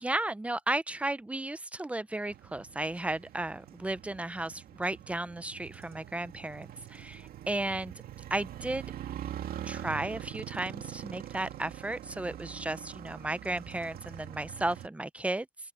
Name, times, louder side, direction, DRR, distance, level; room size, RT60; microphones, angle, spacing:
voice 1, 0.0-7.9 8.3-8.8 9.6-15.5, right 2 dB, 10° right, 0.7 m, -34 dB
Motorcycle, 2.3-14.9, right 11 dB, 60° right, 2.4 m, -44 dB
open air
cardioid pair, 110°, 17 cm